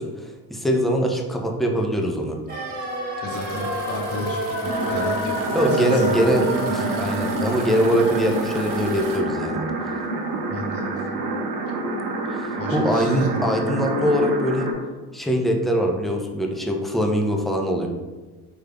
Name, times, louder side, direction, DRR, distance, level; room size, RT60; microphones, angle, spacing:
voice 1, 0.0-2.4 5.5-9.6 12.3-14.7 15.1-17.9, equal, ahead, 1 dB, 0.5 m, -22 dB
sound 1, 2.5-12.4 12.7-12.8, right 1 dB, 20° right, 1.4 m, -30 dB
voice 2, 3.2-6.2 10.5-11.0 12.6-13.5, left 1 dB, 30° left, -1 dB, 1.0 m, -33 dB
sound 2, 3.3-9.2, right 5 dB, 45° right, 0.9 m, -42 dB
sound 3, 4.6-14.7, right 2 dB, 75° right, 0.8 m, -28 dB
5.0 x 3.2 x 2.2 m, 1.3 s
hypercardioid pair, 75°, 46 cm